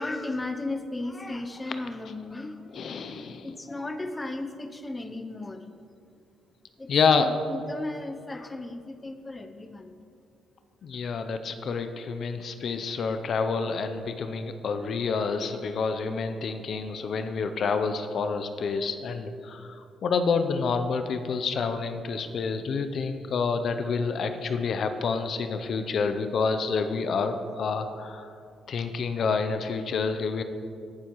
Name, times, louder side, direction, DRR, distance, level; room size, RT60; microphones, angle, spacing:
voice 1, 0.0-2.9 3.4-5.6 6.8-6.9 7.2-9.9 23.0-23.1 24.5-24.6, left 2 dB, 20° left, 8 dB, 0.6 m, -35 dB
voice 2, 2.7-3.5 6.9-7.3 10.8-28.3 28.7-30.4, left 5 dB, 60° left, 8 dB, 0.6 m, -28 dB
17.0 x 7.2 x 3.1 m, 2.4 s
cardioid pair, 90°, 0 cm